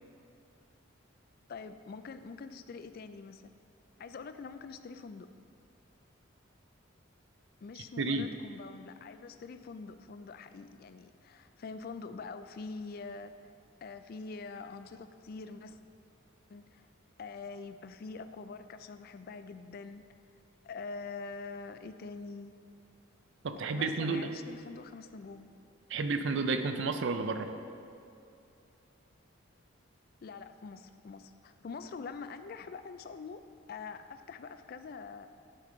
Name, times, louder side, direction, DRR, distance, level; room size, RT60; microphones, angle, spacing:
voice 1, 1.5-3.5 4.0-5.3 7.6-13.5 13.8-15.8 16.5-16.8 17.2-20.0 20.6-22.5 23.7-25.5 30.2-33.4 33.7-35.3, left 4 dB, 45° left, 10 dB, 0.3 m, -45 dB
voice 2, 8.0-8.3 23.4-24.4 25.9-27.5, right 3 dB, 60° right, 8 dB, 0.5 m, -31 dB
11.0 x 5.2 x 3.9 m, 2.6 s
head